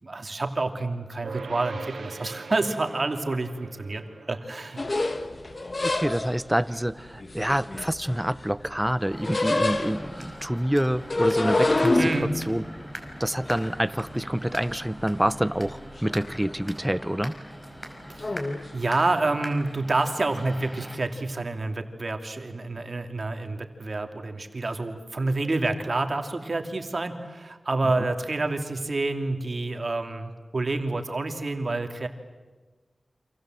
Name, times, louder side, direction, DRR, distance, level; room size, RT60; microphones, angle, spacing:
voice 1, 0.0-4.8 11.9-12.3 18.1-18.4 18.7-32.1, right 2 dB, 55° right, 6 dB, 2.7 m, -28 dB
sound 1, 1.2-12.5, right 4 dB, 85° right, 1.4 m, -45 dB
sound 2, 4.8-6.5 7.2-8.5 8.8-10.3 10.9-14.7 15.0-15.7 16.0-16.5 16.9-17.1 18.2-18.6, left 2 dB, 50° left, 1.7 m, -27 dB
voice 2, 5.8-12.0 12.5-12.6 13.2-17.4, equal, 10° right, 16 dB, 0.9 m, -27 dB
sound 3, 9.1-21.0, equal, 15° left, 5.4 m, -42 dB
29.0 x 26.5 x 7.8 m, 1.3 s
cardioid pair, 50°, 0 cm